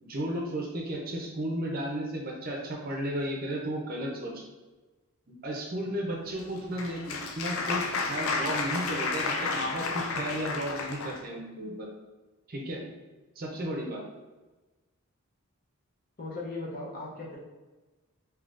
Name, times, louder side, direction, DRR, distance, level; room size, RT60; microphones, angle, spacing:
voice 1, 0.0-4.4 5.4-11.9 12.5-12.8 13.4-14.0, right 1 dB, 40° right, -1 dB, 0.6 m, -34 dB
Applause, 6.4-11.2, left 4 dB, 70° left, 0.4 m, -32 dB
voice 2, 16.2-17.4, left 2 dB, 40° left, -3 dB, 0.7 m, -37 dB
3.6 x 2.8 x 2.5 m, 1.2 s
head